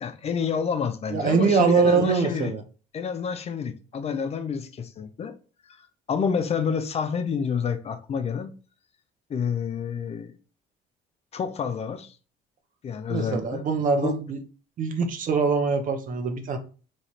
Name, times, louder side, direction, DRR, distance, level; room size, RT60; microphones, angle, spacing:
voice 1, 0.0-2.5 2.9-5.3 5.7-8.5 9.3-10.3 11.3-12.2 12.8-13.7 14.0-14.1, left 6 dB, 40° left, 0.5 m, -29 dB
voice 2, 1.1-2.6 13.1-14.4 14.8-16.6, right 5 dB, 50° right, 0.8 m, -23 dB
3.2 x 2.4 x 4.2 m
cardioid pair, 110°, 17 cm